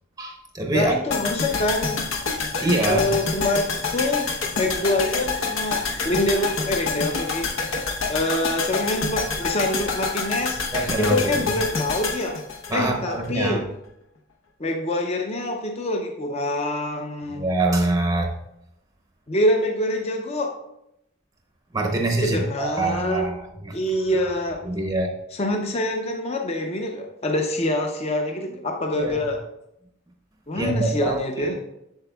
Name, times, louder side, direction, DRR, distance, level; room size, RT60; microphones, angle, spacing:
voice 1, 0.2-0.9 2.6-3.0 10.7-11.2 12.7-13.6 17.4-18.3 21.7-23.8 24.6-25.2 29.0-29.2 30.5-31.5, right 2 dB, 15° right, 0.6 m, -24 dB
voice 2, 0.7-2.1 2.8-7.5 8.1-10.6 11.0-12.4 12.7-13.6 14.6-17.5 19.3-20.5 22.2-23.3 23.7-24.6 25.3-29.4 30.5-31.5, left 1 dB, 30° left, 0.6 m, -25 dB
sound 1, 1.1-13.3 13.6-13.7, left 4 dB, 75° left, 0.9 m, -27 dB
7.9 x 6.7 x 2.3 m
head